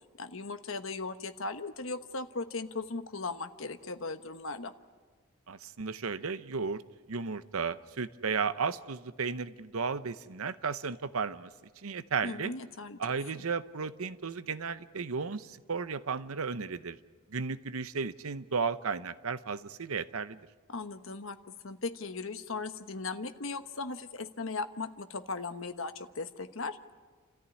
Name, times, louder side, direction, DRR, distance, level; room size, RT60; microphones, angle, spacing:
voice 1, 0.2-4.7 12.2-13.0 20.7-21.4 21.6-26.8, left 3 dB, 70° left, 9 dB, 1.1 m, -38 dB
voice 2, 5.5-6.8 7.1-11.5 11.8-12.5 13.0-17.0 17.3-20.4, right 5 dB, 80° right, 14 dB, 0.8 m, -34 dB
29.5 x 14.0 x 9.8 m, 1.5 s
head